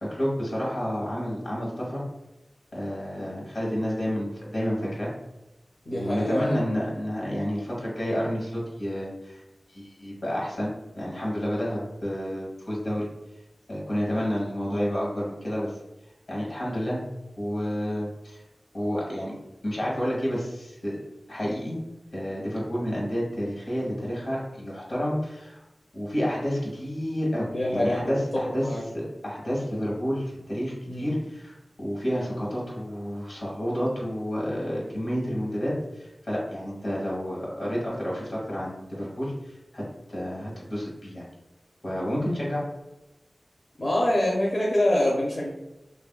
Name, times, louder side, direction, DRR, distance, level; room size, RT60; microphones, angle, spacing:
voice 1, 0.0-2.0 2.7-5.1 5.9-9.4 9.7-13.1 13.7-15.7 16.3-17.0 17.4-18.4 18.7-19.3 19.6-21.0 21.3-21.8 22.1-25.6 25.9-28.7 28.9-39.8 40.1-41.3 41.8-42.6, equal, 75° left, -5 dB, 1.2 m, -30 dB
voice 2, 5.9-6.6 27.5-28.8 30.8-31.1 43.8-45.5, left 1 dB, 55° left, -5 dB, 0.8 m, -25 dB
3.2 x 2.6 x 2.3 m, 0.94 s
wide cardioid pair, 55°, 0 cm